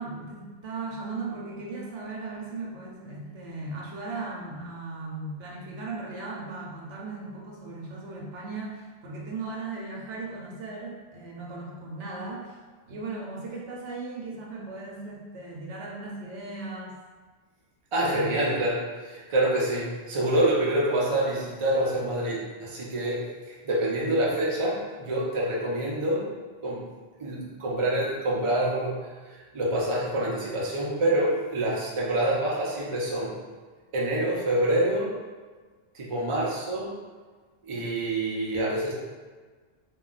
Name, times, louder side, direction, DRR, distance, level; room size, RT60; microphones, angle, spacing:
voice 1, 0.0-12.6 12.9-16.9 18.0-18.3, right 3 dB, 90° right, -2 dB, 1.0 m, -37 dB
voice 2, 17.9-18.8 19.0-23.3 23.6-26.3 26.6-26.8 27.2-29.0 29.5-33.3 33.9-35.1 35.9-36.9 37.6-38.9, right 1 dB, 35° right, -4 dB, 0.5 m, -26 dB
2.3 x 2.3 x 3.8 m, 1.4 s
omnidirectional pair, 1.2 m